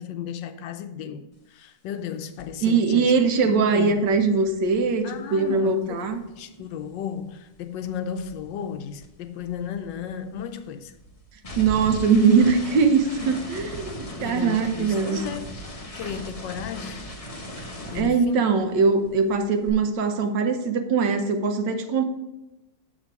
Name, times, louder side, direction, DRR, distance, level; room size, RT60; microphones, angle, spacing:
voice 1, 0.0-3.1 3.4-4.0 5.0-10.9 13.0-13.4 14.2-17.1 17.9-18.5, left 8 dB, 80° left, 1.3 m, -34 dB
sound 1, 2.4-2.6 2.9-7.3 7.5-18.8 19.0-19.7, equal, 30° left, 0.6 m, -39 dB
voice 2, 2.6-6.2 11.6-15.2 17.9-22.0, right 5 dB, 75° right, 1.4 m, -21 dB
6.7 x 6.2 x 4.7 m
omnidirectional pair, 2.0 m